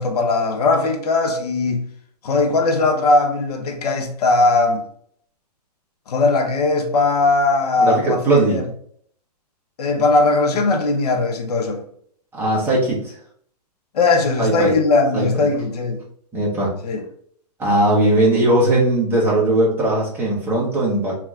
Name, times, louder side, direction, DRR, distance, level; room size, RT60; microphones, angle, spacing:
voice 1, 0.0-1.9 2.2-4.8 6.1-8.6 9.8-11.8 13.9-16.0 16.8-17.0, left 3 dB, 65° left, 1.0 m, -19 dB
voice 2, 7.8-8.6 12.3-13.1 14.4-14.8 15.1-15.5 16.3-16.7 17.6-21.2, right 1 dB, 10° right, 1.3 m, -18 dB
3.6 x 3.0 x 3.6 m
hypercardioid pair, 145°, 21 cm